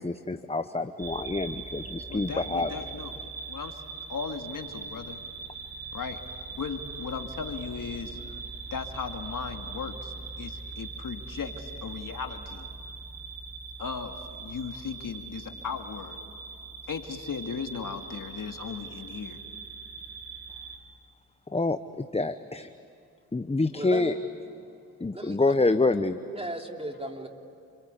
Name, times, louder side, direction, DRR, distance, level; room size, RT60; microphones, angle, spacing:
voice 1, 0.0-2.7 21.5-22.7 23.3-24.1 25.0-26.2, left 3 dB, 15° left, 10 dB, 1.0 m, -27 dB
sound 1, 1.0-20.8, right 4 dB, 50° right, 4.6 m, -41 dB
voice 2, 2.1-3.1 3.5-3.8 4.1-5.2 5.9-6.2 6.5-8.2 8.7-12.7 13.8-16.2 16.9-19.4, left 6 dB, 60° left, 5 dB, 2.3 m, -37 dB
voice 3, 23.7-24.1 25.1-25.9 26.2-27.3, right 1 dB, 15° right, 3 dB, 3.3 m, -37 dB
29.5 x 23.5 x 8.4 m, 2.7 s
cardioid pair, 55°, 37 cm